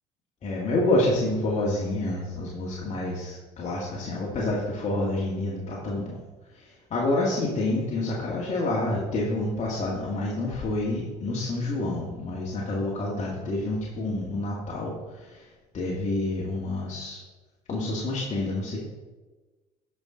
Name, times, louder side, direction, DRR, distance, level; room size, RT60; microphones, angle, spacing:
voice 1, 0.4-6.2 6.5-15.5 15.7-17.2 17.7-18.8, left 2 dB, 45° left, -4 dB, 1.9 m, -28 dB
10.5 x 5.8 x 3.8 m, 1.2 s
supercardioid pair, 80°, 17 cm